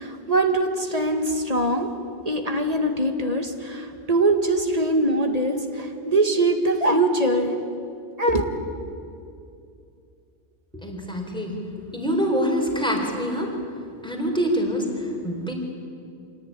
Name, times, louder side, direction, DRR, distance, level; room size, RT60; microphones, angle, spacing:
voice 1, 0.0-1.9 2.3-7.6 8.2-8.4, right 2 dB, 35° right, 5 dB, 2.0 m, -22 dB
voice 2, 10.7-11.6 11.9-13.6 14.0-15.5, equal, 5° left, 0 dB, 4.3 m, -25 dB
26.0 x 18.0 x 9.9 m, 2.5 s
omnidirectional pair, 1.2 m